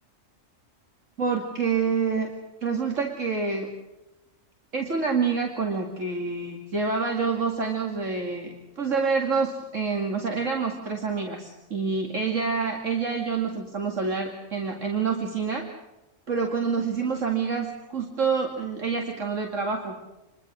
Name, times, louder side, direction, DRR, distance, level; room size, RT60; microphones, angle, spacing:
voice 1, 1.2-2.3 2.6-3.7 4.7-15.7 16.3-20.0, right 5 dB, 70° right, 2 dB, 2.7 m, -27 dB
28.5 x 22.0 x 6.4 m, 1.0 s
omnidirectional pair, 1.4 m